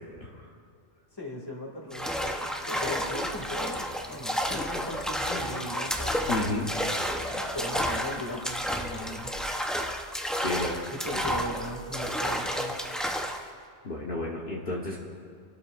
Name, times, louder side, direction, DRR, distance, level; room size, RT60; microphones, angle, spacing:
voice 1, 1.1-6.9 7.3-9.3 10.9-12.8, left 1 dB, 20° left, -1 dB, 2.2 m, -38 dB
sound 1, 1.9-13.5, equal, ahead, 0.6 m, -31 dB
voice 2, 6.3-6.7 10.4-10.7 11.1-11.2 13.8-15.0, left 2 dB, 50° left, -4 dB, 1.4 m, -32 dB
29.0 x 12.5 x 2.5 m, 2.3 s
omnidirectional pair, 1.2 m